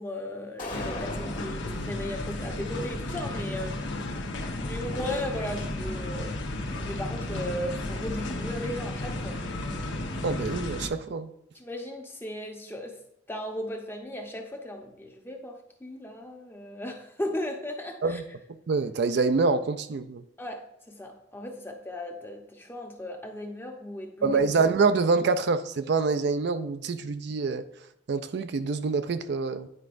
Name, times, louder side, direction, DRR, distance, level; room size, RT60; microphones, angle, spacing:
voice 1, 0.0-3.8 4.6-6.5 6.8-9.4 11.5-13.0 13.3-18.2 20.4-24.4, left 1 dB, 10° left, 0.8 m, -36 dB
sound 1, 0.6-1.6, left 1 dB, 45° left, 1.3 m, -37 dB
sound 2, 0.7-10.9, left 2 dB, 70° left, 0.9 m, -33 dB
voice 2, 10.2-11.3 18.0-18.2 18.7-20.2 24.2-27.7 28.1-29.7, right 4 dB, 65° right, 0.4 m, -26 dB
9.8 x 4.7 x 2.5 m
head